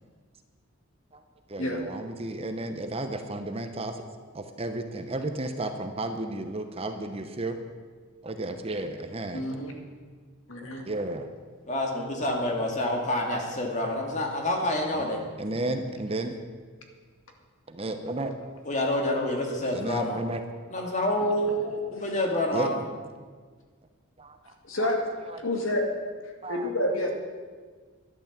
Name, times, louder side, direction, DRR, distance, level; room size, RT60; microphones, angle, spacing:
voice 1, 1.5-4.0 4.3-7.6 8.2-9.4 10.8-11.3 12.8-12.9 13.3-13.5 13.8-13.9 15.0-15.1 15.4-16.4 17.7-18.3 19.7-20.4 22.5-22.7 24.2-24.4 24.8-24.9 25.3-25.4 26.4-26.7, right 2 dB, 25° right, 7 dB, 0.8 m, -33 dB
voice 2, 9.3-9.7 10.5-10.8 21.9-22.0 24.6-25.0 25.4-25.8 26.5-27.1, left 1 dB, 65° left, 2 dB, 2.2 m, -28 dB
voice 3, 11.7-15.2 18.6-20.2 20.7-22.8, left 1 dB, 35° left, 1 dB, 2.3 m, -27 dB
12.0 x 11.0 x 7.4 m, 1.5 s
head